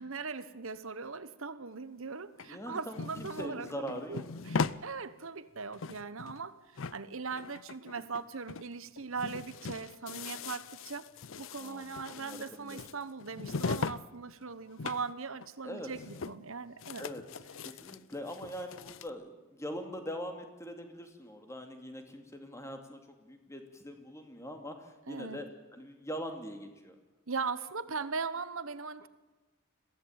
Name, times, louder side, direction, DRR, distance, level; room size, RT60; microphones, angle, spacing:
voice 1, 0.0-11.0 11.4-16.0 16.3-17.1 25.1-25.4 27.3-29.1, right 4 dB, 65° right, 14 dB, 1.2 m, -39 dB
sound 1, 2.4-4.8 5.2-5.3 5.6-6.5 6.8-8.2 8.5-8.7 9.0-14.0 14.3-15.1 15.4-15.5 15.8-16.5 16.8-19.1, left 4 dB, 60° left, 0.6 m, -39 dB
voice 2, 2.5-4.3 7.9-8.0 10.1-10.2 11.6-12.8 15.6-15.9 17.0-17.2 17.6-25.5 25.7-26.9, equal, 15° left, 5 dB, 2.5 m, -42 dB
22.5 x 16.5 x 8.9 m, 1.2 s
head